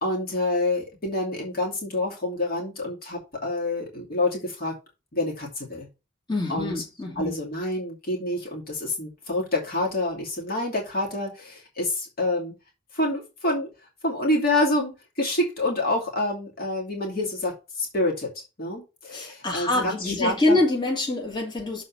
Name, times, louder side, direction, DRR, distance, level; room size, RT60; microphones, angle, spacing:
voice 1, 0.0-4.8 5.1-5.9 6.5-6.7 7.2-12.5 12.9-13.7 14.0-20.6, left 2 dB, 50° left, 2.4 m, -27 dB
voice 2, 6.3-7.3 19.1-21.8, left 2 dB, 20° left, 2.5 m, -25 dB
6.8 x 4.3 x 5.7 m
head